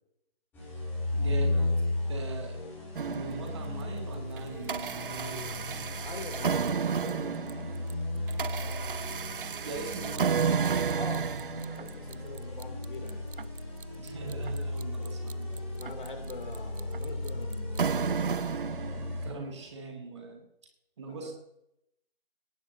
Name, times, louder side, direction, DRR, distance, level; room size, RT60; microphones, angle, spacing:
sound 1, 0.5-19.3, left 2 dB, 5° left, 2.6 m, -35 dB
voice 1, 1.1-1.7 2.1-2.7 3.0-5.8 9.6-10.5 14.0-15.6 19.2-20.5 21.0-21.3, right 3 dB, 30° right, 3 dB, 1.9 m, -41 dB
sound 2, 2.9-3.9 4.4-19.4, right 6 dB, 60° right, 0.4 m, -32 dB
voice 2, 6.0-7.4 10.9-11.3 11.6-13.3 15.6-18.2 21.1-21.3, left 3 dB, 55° left, 4 dB, 2.8 m, -44 dB
18.5 x 10.5 x 2.8 m, 0.81 s
figure-of-eight pair, 155°, 31 cm